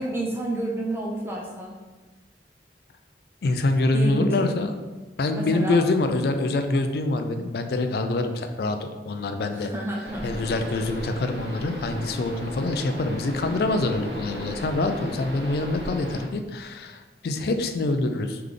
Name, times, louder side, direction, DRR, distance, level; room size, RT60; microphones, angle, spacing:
voice 1, 0.0-1.7 3.9-4.5 5.3-5.8 9.5-10.3, right 1 dB, 15° right, -2 dB, 0.4 m, -29 dB
voice 2, 3.4-4.7 5.2-9.7 10.2-18.4, left 2 dB, 60° left, 7 dB, 0.4 m, -25 dB
sound 1, 10.0-16.3, equal, 65° right, 0.7 m, -36 dB
3.4 x 3.3 x 3.7 m, 1.2 s
head